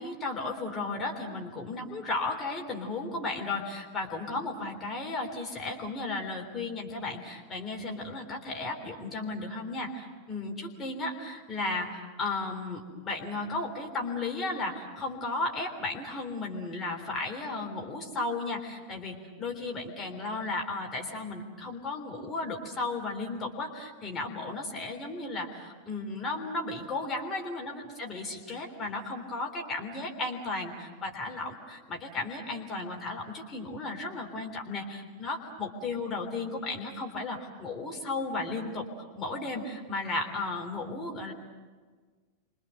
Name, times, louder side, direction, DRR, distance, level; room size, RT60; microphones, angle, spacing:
voice 1, 0.0-38.9 39.1-41.3, left 3 dB, 20° left, 1 dB, 3.6 m, -34 dB
29.0 x 24.5 x 6.6 m, 1.5 s
figure-of-eight pair, 90°, 0 cm